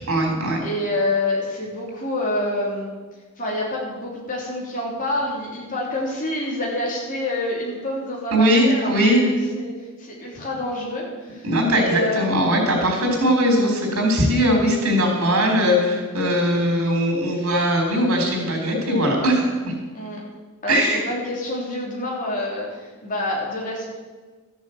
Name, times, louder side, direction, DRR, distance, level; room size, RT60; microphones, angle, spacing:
voice 1, 0.1-0.6 8.3-9.2 11.4-19.5 20.7-21.0, equal, 85° right, 1 dB, 4.0 m, -20 dB
voice 2, 0.6-2.9 3.4-9.7 10.0-11.5 11.7-12.5 19.9-20.2 20.6-23.9, left 1 dB, 40° left, -3 dB, 3.5 m, -27 dB
13.0 x 7.4 x 7.9 m, 1.4 s
head